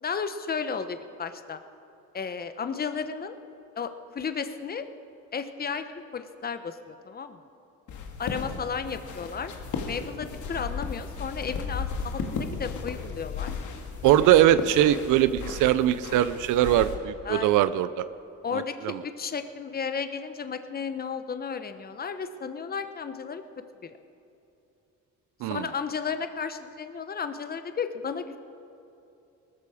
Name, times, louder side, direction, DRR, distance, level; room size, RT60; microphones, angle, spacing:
voice 1, 0.0-1.6 2.1-3.4 3.8-4.9 5.3-7.4 8.2-9.5 9.8-13.5 17.2-17.6 18.4-23.4 23.8-24.0 25.4-28.4, left 6 dB, 30° left, 10 dB, 0.9 m, -33 dB
sound 1, 7.9-17.0, left 5 dB, 80° left, 1.9 m, -35 dB
voice 2, 14.0-18.0 18.5-19.0 25.4-25.6, right 12 dB, 85° right, 14 dB, 0.5 m, -21 dB
19.0 x 14.0 x 4.9 m, 2.8 s
cardioid pair, 90°, 30 cm